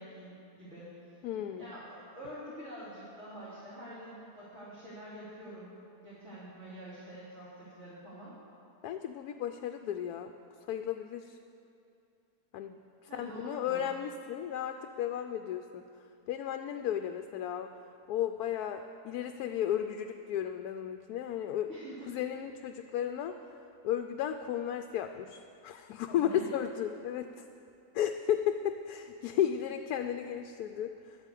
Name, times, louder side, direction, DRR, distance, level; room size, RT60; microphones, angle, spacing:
voice 1, 0.0-1.2 1.6-5.8 6.0-8.3 13.0-13.9 21.7-22.1 26.1-26.6, right 1 dB, 45° right, -11 dB, 3.5 m, -46 dB
voice 2, 1.2-1.7 8.8-10.3 10.7-11.4 12.5-12.7 13.0-15.8 16.3-17.7 18.1-21.7 22.1-23.3 23.8-27.4 27.9-31.2, left 10 dB, 75° left, 7 dB, 1.1 m, -34 dB
11.5 x 8.5 x 8.3 m, 2.6 s
omnidirectional pair, 1.7 m